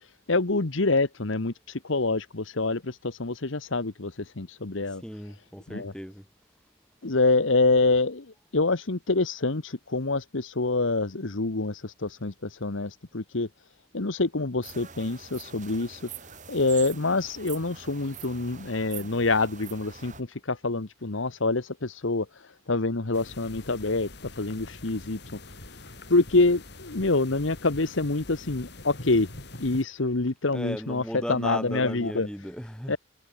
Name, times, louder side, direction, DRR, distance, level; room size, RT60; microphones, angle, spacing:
voice 1, 0.0-5.0 5.7-5.9 7.0-13.5 13.9-16.0 16.5-25.4 26.1-29.3 29.6-32.3 32.9-33.0, left 3 dB, 70° left, 1.2 m, -26 dB
voice 2, 4.9-6.2 18.0-18.6 30.5-33.0, equal, 5° left, 4.8 m, -37 dB
sound 1, 14.6-20.2, right 7 dB, 35° right, 7.9 m, -44 dB
sound 2, 23.1-29.8, left 2 dB, 55° left, 4.1 m, -44 dB
head